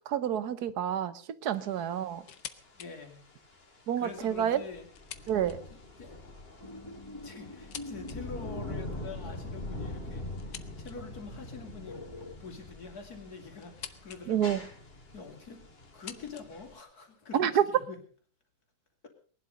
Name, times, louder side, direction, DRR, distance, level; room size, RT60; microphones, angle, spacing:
voice 1, 0.1-2.2 3.9-4.6 5.3-5.6 14.3-14.6 17.3-17.6, right 9 dB, 65° right, 14 dB, 1.5 m, -28 dB
sound 1, 1.5-16.8, left 1 dB, 35° left, 2.3 m, -44 dB
sound 2, 2.2-2.9 3.3-3.4 4.2-5.9 6.8-8.2 10.4-11.2 12.4-14.2 14.5-15.1 15.8-17.2, left 10 dB, 80° left, 1.6 m, -48 dB
voice 2, 2.7-3.3 4.0-4.9 5.7-6.2 7.2-12.0 12.4-14.5 15.1-15.6 15.9-18.0, left 4 dB, 60° left, 4 dB, 3.3 m, -45 dB
sound 3, 6.6-9.8 11.9-12.4, left 2 dB, 20° left, 0.9 m, -46 dB
20.0 x 11.5 x 5.3 m, 0.43 s
omnidirectional pair, 1.8 m